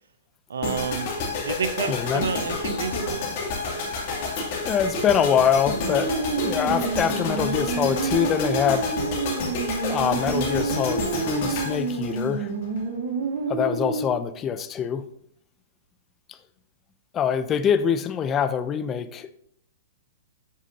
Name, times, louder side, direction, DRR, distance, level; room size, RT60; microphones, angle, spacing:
voice 1, 0.5-3.2, right 6 dB, 80° right, 11 dB, 0.4 m, -30 dB
sound 1, 0.6-12.8, left 3 dB, 50° left, 2.5 m, -30 dB
voice 2, 1.9-2.3 4.7-6.1 6.4-9.0 9.9-12.5 13.5-15.1 16.3-16.4 17.1-19.4, left 8 dB, 25° left, 12 dB, 0.5 m, -24 dB
sound 2, 5.6-14.1, right 4 dB, 60° right, 1.2 m, -29 dB
8.2 x 5.1 x 2.8 m, 0.69 s
hypercardioid pair, 125°, 0 cm